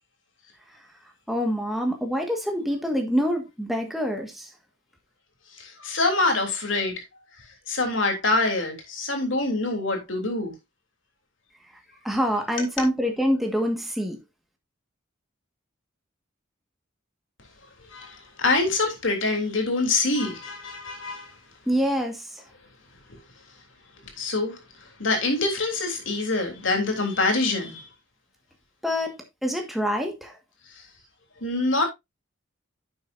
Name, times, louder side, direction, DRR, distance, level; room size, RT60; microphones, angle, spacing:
voice 1, 1.3-4.5 12.0-14.2 21.7-22.4 28.8-29.2 29.4-30.4, equal, ahead, 1.6 m, -26 dB
voice 2, 5.6-7.0 7.7-10.5 17.9-21.3 24.2-24.6 25.0-27.8 31.4-31.8, left 2 dB, 75° left, 3.2 m, -25 dB
10.5 x 7.8 x 2.6 m
head